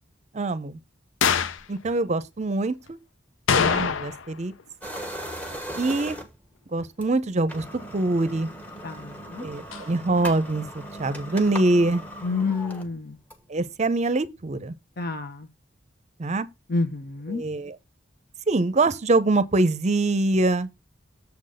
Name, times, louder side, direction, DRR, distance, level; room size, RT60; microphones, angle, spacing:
voice 1, 0.3-0.8 1.7-3.0 3.5-4.5 5.8-6.2 6.7-7.6 7.9-8.5 9.4-12.0 13.5-14.7 16.2-16.5 17.3-17.8 18.5-20.7, right 2 dB, 35° right, 0.6 m, -24 dB
sound 1, 1.2-1.6 3.5-4.3 4.6-4.7 9.7-9.8, left 6 dB, 85° left, 0.5 m, -23 dB
sound 2, 4.8-6.5 7.0-7.1 7.4-13.6, equal, 10° left, 1.1 m, -38 dB
voice 2, 8.8-9.5 12.2-13.2 15.0-15.5 16.7-17.4, left 3 dB, 55° left, 1.0 m, -29 dB
7.1 x 3.9 x 6.4 m
head